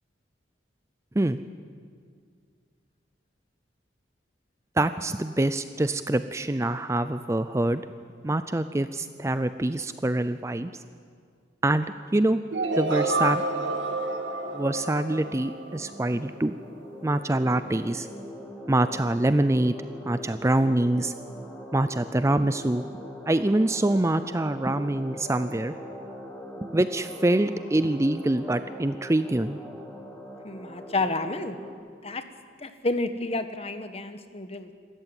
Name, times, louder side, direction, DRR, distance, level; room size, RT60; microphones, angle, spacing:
voice 1, 4.8-7.8 8.2-10.7 11.6-11.9 12.1-12.4 12.7-13.4 14.5-16.6 17.0-18.1 18.7-19.7 20.1-21.1 21.7-22.8 23.3-25.7 26.7-29.6, right 1 dB, 15° right, 12 dB, 0.5 m, -25 dB
sound 1, 12.5-16.4, right 2 dB, 80° right, 2.1 m, -29 dB
sound 2, 13.3-31.7, equal, 10° left, 2.5 m, -42 dB
voice 2, 30.4-31.6 32.0-32.2 32.6-34.7, left 2 dB, 35° left, 9 dB, 1.2 m, -30 dB
26.0 x 14.0 x 9.0 m, 2.1 s
head